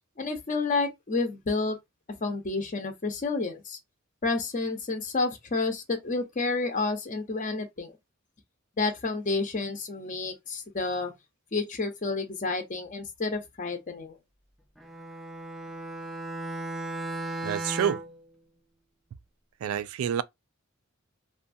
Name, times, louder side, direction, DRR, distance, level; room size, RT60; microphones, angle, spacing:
voice 1, 0.2-1.8 2.2-3.8 4.2-8.0 8.8-11.1 11.5-14.2, left 3 dB, 40° left, 0.7 m, -30 dB
Bowed string instrument, 14.8-18.2, right 1 dB, ahead, 0.3 m, -36 dB
voice 2, 17.4-18.0 19.6-20.2, right 9 dB, 90° right, 0.3 m, -28 dB
2.6 x 2.3 x 2.6 m
head